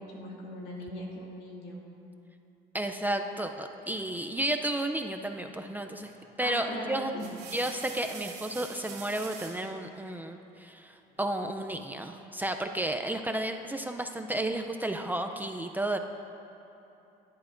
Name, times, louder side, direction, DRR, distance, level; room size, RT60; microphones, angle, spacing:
voice 1, 0.0-1.8 6.4-7.3, left 1 dB, 75° left, -3 dB, 2.2 m, -39 dB
voice 2, 2.7-6.1 6.4-7.1 7.5-16.0, right 1 dB, 10° right, 5 dB, 0.4 m, -32 dB
sound 1, 6.0-6.3 7.0-9.7 11.1-11.8, right 6 dB, 85° right, 1.9 m, -46 dB
16.5 x 10.5 x 2.6 m, 2.9 s
cardioid pair, 110°, 17 cm